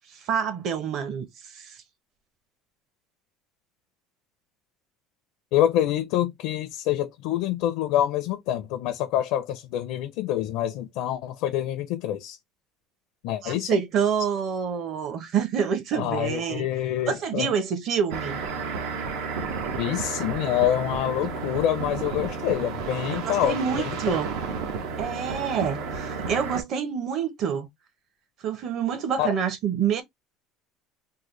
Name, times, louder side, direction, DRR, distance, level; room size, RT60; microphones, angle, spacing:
voice 1, 0.1-1.8 13.4-16.7 17.1-18.4 23.2-24.3 25.0-27.7 28.4-30.0, right 7 dB, 40° right, 0.8 m, -27 dB
voice 2, 5.5-12.4 13.2-13.8 15.9-17.5 19.8-24.0 29.2-29.3, left 12 dB, 65° left, 0.5 m, -26 dB
sound 1, 18.1-26.6, right 5 dB, 85° right, 1.0 m, -32 dB
3.7 x 2.1 x 3.0 m
cardioid pair, 165°, 0 cm